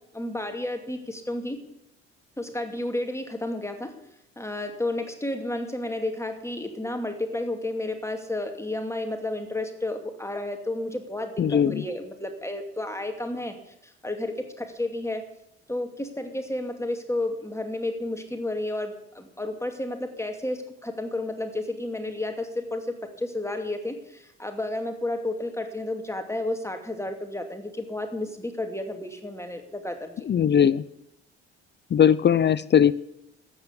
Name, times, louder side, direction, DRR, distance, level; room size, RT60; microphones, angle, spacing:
voice 1, 0.1-1.6 2.4-4.0 4.4-13.6 13.8-15.2 15.7-30.3, left 1 dB, 10° left, 5 dB, 2.5 m, -31 dB
voice 2, 11.4-11.8 30.3-30.8 31.9-32.9, left 8 dB, 35° left, 18 dB, 0.6 m, -19 dB
13.5 x 9.0 x 9.8 m, 0.81 s
hypercardioid pair, 55°, 32 cm